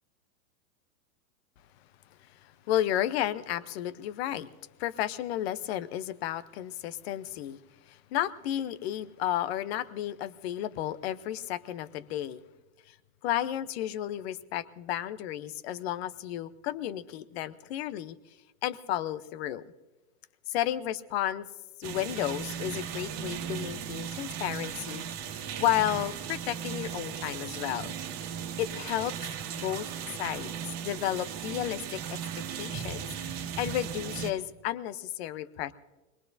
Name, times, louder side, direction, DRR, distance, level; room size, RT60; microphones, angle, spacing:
voice 1, 2.7-4.5 4.8-7.6 7.9-12.4 12.9-13.0 13.2-18.2 18.6-19.7 20.5-21.5 21.8-25.0 25.6-27.9 28.6-29.1 29.5-29.9 30.2-30.5 30.8-32.2 32.6-35.7, left 12 dB, 45° left, 15 dB, 0.7 m, -32 dB
sound 1, 21.8-34.3, right 8 dB, 40° right, 1.6 m, -37 dB
25.5 x 21.0 x 2.6 m, 1.1 s
supercardioid pair, 150°, 45 cm